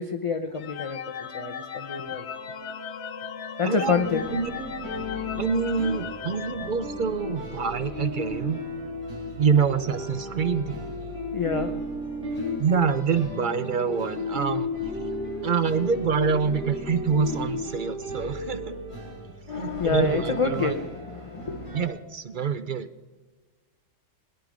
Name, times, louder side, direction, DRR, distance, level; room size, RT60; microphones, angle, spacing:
voice 1, 0.0-2.3 3.6-4.3 11.1-11.7 19.5-21.8, left 5 dB, 35° left, 6 dB, 0.6 m, -28 dB
sound 1, 0.6-7.6, left 7 dB, 65° left, 1.1 m, -37 dB
voice 2, 3.6-4.0 4.3-4.5 5.4-8.6 9.4-10.8 12.6-14.7 15.4-18.8 19.5-20.8 21.7-22.9, right 6 dB, 55° right, 12 dB, 0.6 m, -26 dB
sound 2, 3.9-21.9, left 2 dB, 80° right, 4.9 m, -34 dB
21.0 x 10.0 x 5.1 m, 1.3 s
omnidirectional pair, 1.3 m